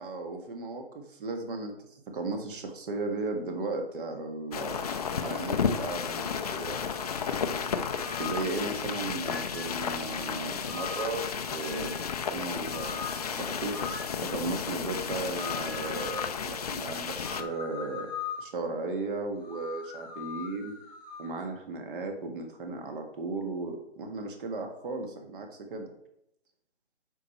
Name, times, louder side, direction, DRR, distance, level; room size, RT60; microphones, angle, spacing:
voice 1, 0.0-4.8 5.2-7.2 8.2-11.2 11.5-12.0 12.3-13.7 14.2-18.1 18.4-20.7 21.2-25.8, right 3 dB, 45° right, 4 dB, 1.7 m, -36 dB
sound 1, 4.5-17.4, left 6 dB, 35° left, 0.5 m, -33 dB
sound 2, 7.9-8.5 9.2-9.7 10.7-11.2 11.6-12.1 12.6-13.2 13.7-14.2 15.4-16.3 17.2-18.5 19.4-21.3, left 5 dB, 5° right, 1.4 m, -40 dB
8.1 x 5.7 x 4.4 m, 0.79 s
hypercardioid pair, 150°, 36 cm